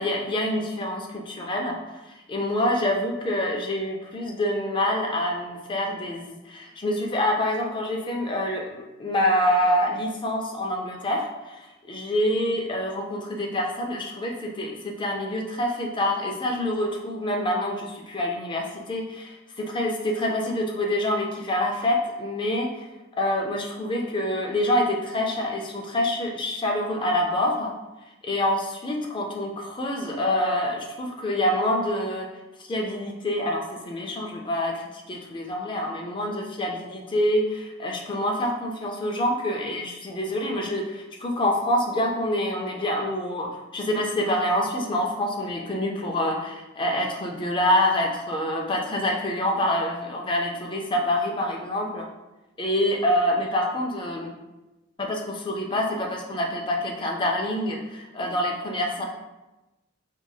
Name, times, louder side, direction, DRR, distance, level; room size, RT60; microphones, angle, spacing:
voice 1, 0.0-1.8 2.3-22.8 23.2-27.7 28.2-32.3 32.6-52.1 52.6-54.3 55.0-59.1, left 1 dB, 25° left, 0 dB, 0.4 m, -26 dB
4.5 x 2.7 x 2.2 m, 1.0 s
head